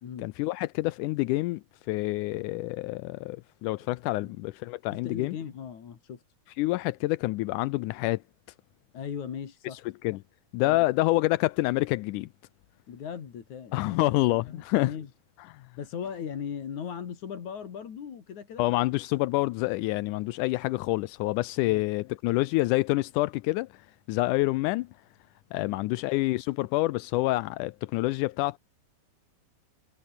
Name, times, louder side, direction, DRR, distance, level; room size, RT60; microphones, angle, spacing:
voice 1, 0.2-5.4 6.6-8.2 9.7-10.2 10.5-12.3 13.7-14.9 15.5-15.7 18.6-24.9 25.5-28.6, left 20 dB, 90° left, 1.8 m, -27 dB
voice 2, 4.9-6.2 8.9-9.8 10.6-10.8 12.9-14.2 14.5-15.1 15.8-18.8 21.6-21.8 25.7-25.9, left 7 dB, 55° left, 3.6 m, -38 dB
omnidirectional pair, 4.2 m